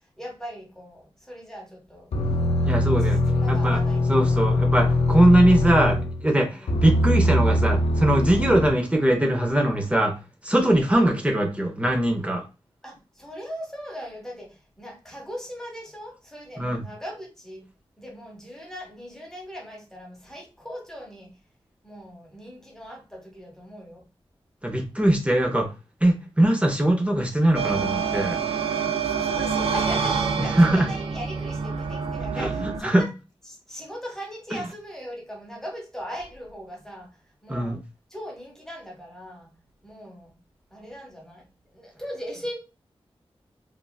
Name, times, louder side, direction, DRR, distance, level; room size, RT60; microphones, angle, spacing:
voice 1, 0.2-2.1 2.6-4.6 6.5-6.8 10.6-10.9 12.8-17.6 18.0-21.3 21.8-24.0 28.7-33.1 33.5-37.1 37.4-37.8 38.1-39.5 39.8-40.3 40.7-41.4 41.7-42.6, equal, 5° left, 1.0 m, -39 dB
sound 1, 2.1-6.2 6.7-8.7, left 1 dB, 80° left, 0.5 m, -22 dB
voice 2, 2.6-3.2 3.5-3.8 4.1-10.1 10.4-12.4 16.6-16.8 24.6-25.7 26.0-28.4 30.6-30.9 32.3-33.0 34.5-34.6 37.5-37.8, right 1 dB, 10° right, 0.5 m, -21 dB
sound 2, 27.5-32.8, right 6 dB, 75° right, 0.4 m, -27 dB
3.1 x 2.4 x 2.2 m
wide cardioid pair, 115°, 10 cm